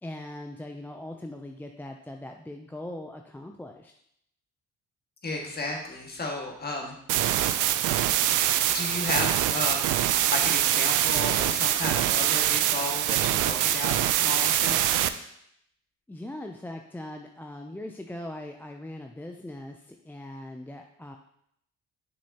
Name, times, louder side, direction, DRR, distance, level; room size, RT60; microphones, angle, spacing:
voice 1, 0.0-3.9 16.1-21.2, left 1 dB, 5° left, 3 dB, 0.4 m, -40 dB
voice 2, 5.2-7.0 8.7-9.9 10.3-15.0, left 2 dB, 30° left, 0 dB, 1.7 m, -33 dB
sound 1, 7.1-15.1, right 12 dB, 85° right, 0.5 m, -24 dB
6.6 x 6.6 x 2.8 m, 0.73 s
cardioid pair, 90°, 30 cm